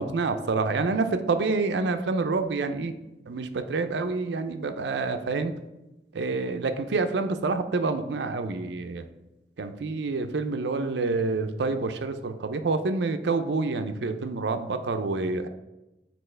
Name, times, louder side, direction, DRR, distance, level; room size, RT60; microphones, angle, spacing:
voice 1, 0.0-2.9 3.3-5.5 6.1-9.0 9.6-15.5, right 3 dB, 80° right, 8 dB, 0.5 m, -27 dB
6.7 x 4.3 x 3.3 m, 0.98 s
head